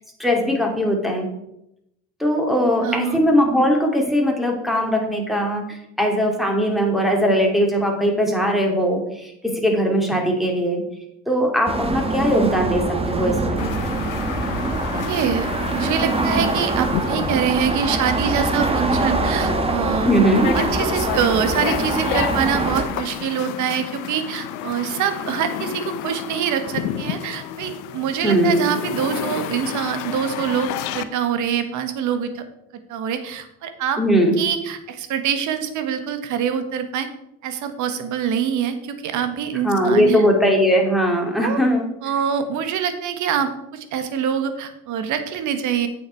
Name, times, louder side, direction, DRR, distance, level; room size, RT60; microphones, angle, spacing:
voice 1, 0.2-1.3 2.2-10.8 11.3-13.7 20.0-20.6 28.2-28.6 34.0-34.3 39.6-41.9, equal, ahead, 1 dB, 2.5 m, -20 dB
voice 2, 2.8-3.2 15.1-20.1 20.5-32.4 32.9-34.0 34.4-37.1 37.4-40.2 41.4-41.6 42.0-45.9, right 8 dB, 70° right, 9 dB, 1.3 m, -25 dB
sound 1, 11.7-22.8, right 2 dB, 20° right, 1.3 m, -24 dB
sound 2, 13.6-31.0, left 10 dB, 80° left, 0.7 m, -31 dB
8.5 x 6.7 x 4.5 m, 0.83 s
supercardioid pair, 90°, 31 cm